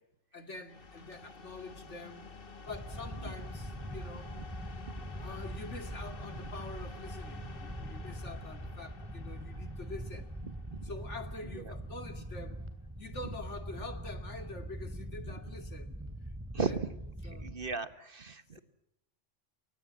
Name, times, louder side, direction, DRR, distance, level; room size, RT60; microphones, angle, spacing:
voice 1, 0.3-2.3 2.6-4.3 5.2-10.3 10.8-12.7 13.0-15.9 16.3-16.8 17.2-17.5, left 2 dB, 65° left, 2.7 m, -46 dB
sound 1, 0.7-12.3, left 4 dB, 45° left, 1.5 m, -50 dB
sound 2, 2.7-17.7, right 1 dB, 10° right, 2.9 m, -43 dB
voice 2, 16.5-16.9 17.3-18.6, right 4 dB, 45° right, 1.4 m, -35 dB
29.0 x 23.5 x 7.6 m
omnidirectional pair, 1.3 m